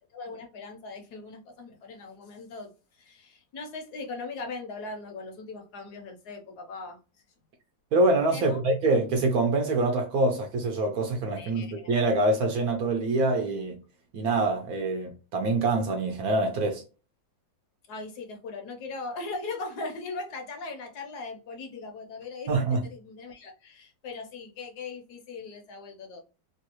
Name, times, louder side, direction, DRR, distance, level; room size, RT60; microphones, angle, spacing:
voice 1, 0.1-7.0 8.3-8.6 11.4-11.9 17.9-26.2, left 3 dB, 65° left, 1.1 m, -39 dB
voice 2, 7.9-13.8 14.1-16.8 22.5-22.8, right 2 dB, 70° right, 0.9 m, -25 dB
3.2 x 2.3 x 2.8 m
omnidirectional pair, 2.0 m